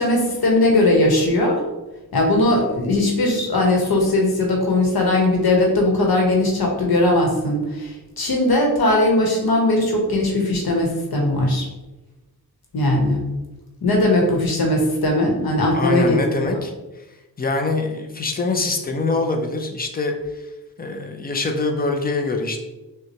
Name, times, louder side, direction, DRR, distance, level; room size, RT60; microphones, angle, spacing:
voice 1, 0.0-1.6 2.1-11.7 12.7-13.3 13.8-16.6, left 1 dB, 70° left, 0 dB, 1.1 m, -19 dB
voice 2, 15.7-16.7 17.4-20.5 20.8-22.6, left 3 dB, 25° left, 4 dB, 0.5 m, -24 dB
6.1 x 2.3 x 2.9 m, 1.1 s
wide cardioid pair, 135°, 38 cm